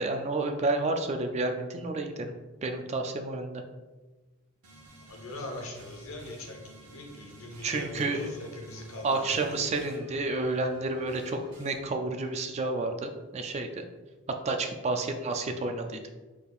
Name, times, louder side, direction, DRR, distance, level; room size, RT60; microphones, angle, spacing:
voice 1, 0.0-2.3 2.6-3.6 7.6-8.2 9.0-13.8 14.4-16.0, right 2 dB, 30° right, 5 dB, 0.3 m, -30 dB
sound 1, 4.6-11.7, right 2 dB, 80° right, 1.0 m, -52 dB
voice 2, 5.0-9.5, left 1 dB, 65° left, 1 dB, 1.0 m, -41 dB
6.4 x 3.5 x 2.4 m, 1.2 s
head